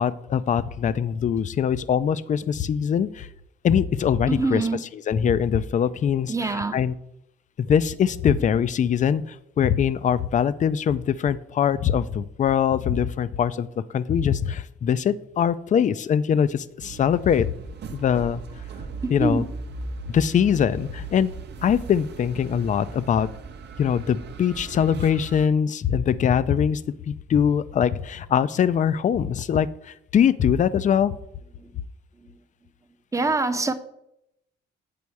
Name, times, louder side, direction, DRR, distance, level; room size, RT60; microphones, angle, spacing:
voice 1, 0.0-3.3 3.6-4.7 4.9-6.9 7.7-13.7 13.9-17.5 17.9-18.4 19.1-19.4 20.1-21.3 21.6-23.3 23.8-26.8 27.1-31.1, left 8 dB, 40° left, 0.4 m, -22 dB
voice 2, 4.3-4.8 6.3-6.8 19.0-19.5 31.6-31.7 33.1-33.7, right 3 dB, 15° right, 0.7 m, -24 dB
sound 1, 16.8-25.5, right 3 dB, 60° right, 0.7 m, -38 dB
8.5 x 4.2 x 4.7 m
cardioid pair, 90°, 20 cm